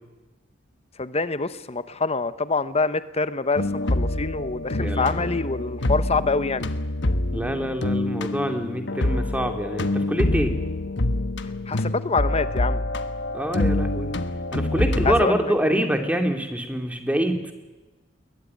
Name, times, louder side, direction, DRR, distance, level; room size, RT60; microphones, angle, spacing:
voice 1, 1.0-6.7 11.7-12.8 15.0-15.5, left 3 dB, 30° left, 13 dB, 1.0 m, -25 dB
sound 1, 3.6-15.2, left 1 dB, 65° left, 1.2 m, -26 dB
voice 2, 4.8-5.3 7.3-10.5 13.3-14.1 14.5-17.5, equal, 5° right, 5 dB, 2.5 m, -25 dB
22.0 x 18.5 x 9.6 m, 1.1 s
head